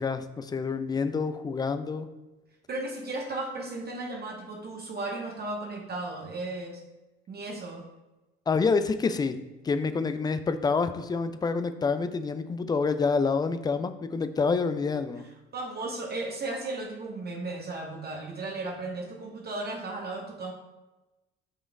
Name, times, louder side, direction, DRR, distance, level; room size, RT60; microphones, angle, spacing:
voice 1, 0.0-2.1 8.5-9.4 9.6-15.2, left 4 dB, 15° left, 10 dB, 0.4 m, -27 dB
voice 2, 2.7-6.8 7.3-7.9 15.5-20.5, right 2 dB, 30° right, 0 dB, 1.1 m, -35 dB
8.3 x 5.1 x 2.3 m, 1.1 s
figure-of-eight pair, 55°, 32 cm